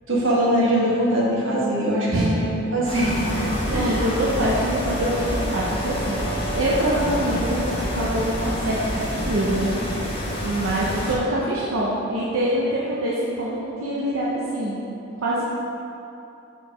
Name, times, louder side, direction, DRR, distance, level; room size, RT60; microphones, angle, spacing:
voice 1, 0.1-4.0, equal, 70° right, -6 dB, 1.5 m, -22 dB
sound 1, 2.8-11.2, equal, 30° left, 0.9 m, -27 dB
voice 2, 3.7-9.8 10.4-14.8 15.2-15.4, right 1 dB, 90° right, -6 dB, 0.8 m, -25 dB
5.0 x 4.7 x 5.0 m, 2.7 s
head